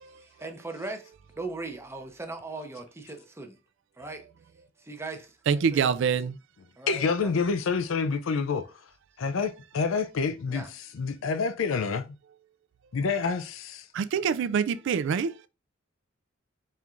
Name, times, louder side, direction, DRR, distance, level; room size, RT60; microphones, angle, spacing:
voice 1, 0.2-3.6 4.0-4.3 4.8-5.4 5.7-5.9 6.8-7.3 10.5-10.7, right 3 dB, 15° right, 0.6 m, -39 dB
voice 2, 5.5-6.3 13.9-15.3, right 6 dB, 65° right, 0.3 m, -25 dB
voice 3, 6.9-8.7 9.2-10.6 10.9-12.2 12.9-13.9, left 5 dB, 80° left, 0.5 m, -27 dB
4.3 x 3.5 x 2.4 m
head